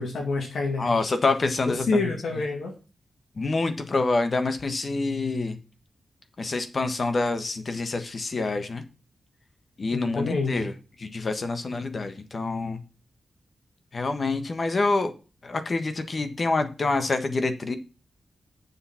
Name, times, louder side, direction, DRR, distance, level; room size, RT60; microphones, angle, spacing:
voice 1, 0.0-0.9 1.7-2.7 9.9-10.6, left 3 dB, 90° left, 2 dB, 1.9 m, -27 dB
voice 2, 0.8-2.1 3.4-5.6 6.4-8.8 9.8-10.7 11.0-12.8 13.9-15.1 15.4-17.8, left 3 dB, 50° left, 9 dB, 1.3 m, -26 dB
7.1 x 6.9 x 5.7 m, 0.34 s
cardioid pair, 80°, 0 cm